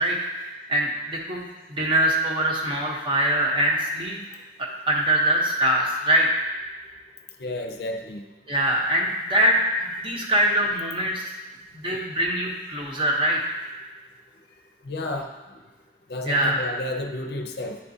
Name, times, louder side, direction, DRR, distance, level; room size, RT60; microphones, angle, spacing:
voice 1, 0.0-4.2 4.9-6.4 8.5-11.3 11.7-13.6 16.2-16.6, right 1 dB, 30° right, -2 dB, 0.9 m, -23 dB
voice 2, 7.4-8.3 14.8-15.6 16.1-17.8, left 1 dB, 60° left, 4 dB, 0.5 m, -31 dB
9.7 x 3.6 x 2.7 m, 1.2 s
head